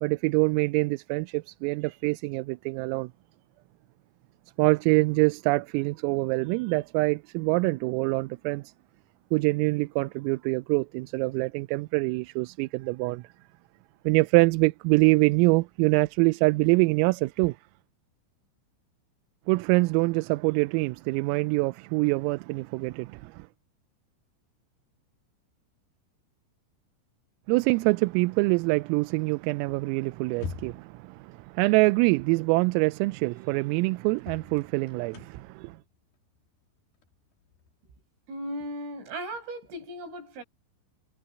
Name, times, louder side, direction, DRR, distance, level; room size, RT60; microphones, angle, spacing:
voice 1, 0.0-3.1 4.6-8.6 9.3-13.3 14.1-17.6 19.5-23.5 27.5-35.8, right 25 dB, 85° right, 3.3 m, -25 dB
sound 1, 30.3-31.0 32.8-32.9 33.3-33.4 34.2-37.8, left 5 dB, 55° left, 3.6 m, -43 dB
voice 2, 38.3-40.4, right 1 dB, 70° right, 9.9 m, -36 dB
omnidirectional pair, 6.0 m